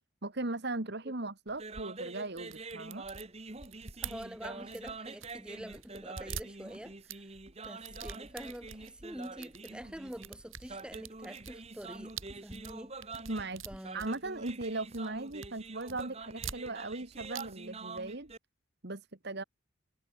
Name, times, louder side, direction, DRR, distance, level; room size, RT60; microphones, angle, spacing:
voice 1, 0.2-3.1 13.3-13.6 13.9-18.3 18.8-19.4, right 2 dB, 50° right, 1.7 m, -38 dB
sound 1, 1.5-18.4, right 3 dB, 30° right, 1.7 m, -46 dB
sound 2, 2.3-5.4 5.7-7.2 7.6-8.9 9.2-9.7 10.1-14.7 14.9-15.5 15.8-17.0 17.3-17.4 17.7-17.8, right 7 dB, 75° right, 5.0 m, -45 dB
voice 2, 4.0-7.3 7.6-12.2 12.4-12.9 13.7-14.0, equal, 5° right, 1.8 m, -46 dB
head